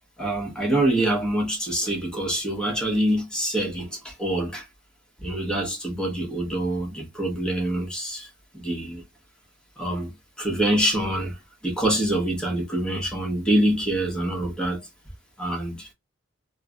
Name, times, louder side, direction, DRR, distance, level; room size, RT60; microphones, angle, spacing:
voice 1, 0.2-4.6 5.2-8.3 8.5-9.0 9.8-10.1 10.4-11.4 11.6-14.8 15.4-15.9, right 1 dB, 5° left, 1.0 m, -25 dB
3.2 x 2.1 x 2.3 m
head